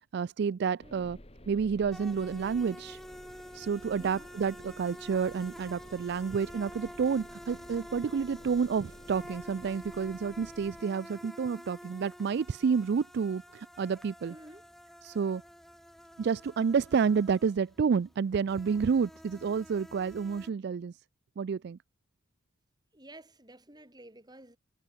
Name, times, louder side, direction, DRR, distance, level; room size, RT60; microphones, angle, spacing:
voice 1, 0.1-1.2 1.5-3.0 3.5-14.3 15.0-15.4 16.2-20.9 21.4-21.8, right 6 dB, 55° right, 0.3 m, -29 dB
sound 1, 0.8-10.8, left 1 dB, 30° left, 5.2 m, -53 dB
voice 2, 0.8-1.2 4.0-4.3 14.3-14.7 22.9-24.6, right 1 dB, 20° right, 7.2 m, -52 dB
sound 2, 1.9-20.5, equal, ahead, 1.3 m, -49 dB
head